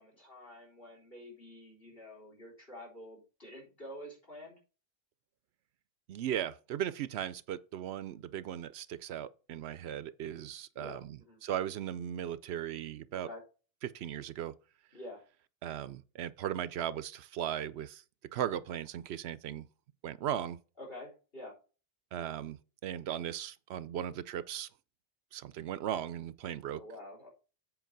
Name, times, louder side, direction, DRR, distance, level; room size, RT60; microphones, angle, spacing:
voice 1, 0.0-4.6 10.7-11.4 13.1-13.4 14.9-15.2 20.8-21.5 26.8-27.3, left 1 dB, 65° left, 4.1 m, -48 dB
voice 2, 6.1-13.3 13.8-14.5 15.6-18.0 18.3-19.7 20.0-20.6 22.1-24.7 25.3-26.8, right 10 dB, 85° right, 0.8 m, -37 dB
8.0 x 4.6 x 4.6 m
omnidirectional pair, 1.1 m